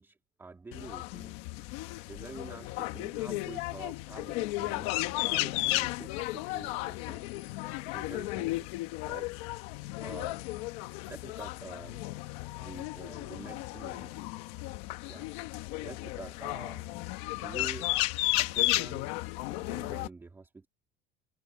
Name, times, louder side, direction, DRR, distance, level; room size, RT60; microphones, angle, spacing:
voice 1, 0.0-1.3 2.1-7.3 7.9-8.7 9.1-9.3 10.0-10.4 11.1-12.0 12.6-14.2 15.1-16.9 17.4-17.9 18.4-20.7, right 3 dB, 10° right, 2.6 m, -47 dB
sound 1, 0.7-20.1, left 20 dB, 70° left, 1.6 m, -34 dB
cardioid pair, 165°, 20 cm